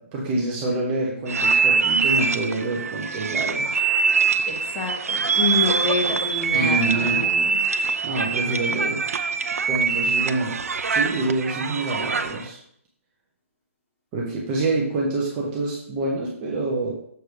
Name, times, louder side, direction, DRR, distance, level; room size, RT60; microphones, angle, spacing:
voice 1, 0.1-3.8 6.5-7.3 8.0-9.0 9.7-12.6 14.1-16.9, right 2 dB, 15° right, -3 dB, 0.7 m, -26 dB
sound 1, 1.3-12.5, right 5 dB, 85° right, 0.6 m, -23 dB
voice 2, 4.4-7.6, left 3 dB, 15° left, 0 dB, 1.1 m, -27 dB
6.6 x 3.3 x 5.8 m, 0.70 s
hypercardioid pair, 175°, 8 cm